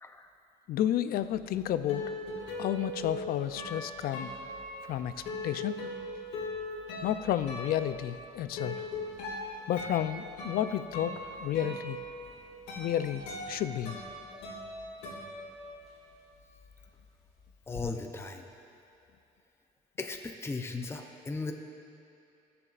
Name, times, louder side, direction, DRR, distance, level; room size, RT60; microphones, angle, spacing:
voice 1, 0.7-2.1 2.6-4.3 4.8-5.1 5.4-5.8 7.0-8.8 9.7-12.0 12.8-14.0, left 11 dB, 60° left, 12 dB, 0.4 m, -31 dB
sound 1, 1.3-16.1 16.4-17.9, left 2 dB, 85° left, 2.2 m, -40 dB
voice 2, 17.7-18.4 20.0-21.5, left 3 dB, 15° left, 5 dB, 0.6 m, -36 dB
20.0 x 6.9 x 2.5 m, 2.8 s
cardioid pair, 110°, 17 cm